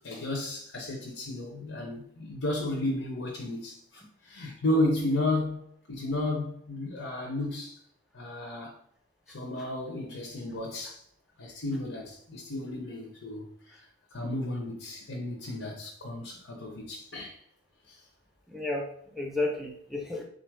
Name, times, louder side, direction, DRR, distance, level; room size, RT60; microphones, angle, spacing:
voice 1, 0.0-5.6 5.9-7.8 8.1-8.8 9.3-11.0 11.4-13.8 14.1-17.4 17.9-18.0, left 1 dB, 75° left, 0.8 m, -33 dB
voice 2, 18.5-20.2, left 2 dB, ahead, 0.7 m, -33 dB
4.0 x 2.5 x 4.5 m
head